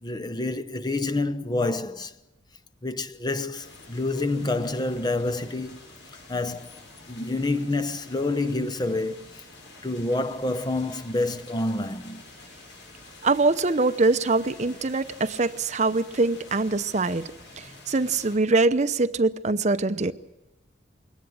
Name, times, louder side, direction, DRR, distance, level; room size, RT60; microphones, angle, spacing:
voice 1, 0.0-2.1 2.8-5.9 6.3-6.7 7.1-9.4 9.8-12.2, left 2 dB, 20° left, 0.8 m, -28 dB
sound 1, 3.6-18.4, left 2 dB, 80° left, 7.2 m, -48 dB
voice 2, 13.2-20.1, right 3 dB, 40° right, 0.8 m, -23 dB
22.0 x 18.5 x 7.8 m
head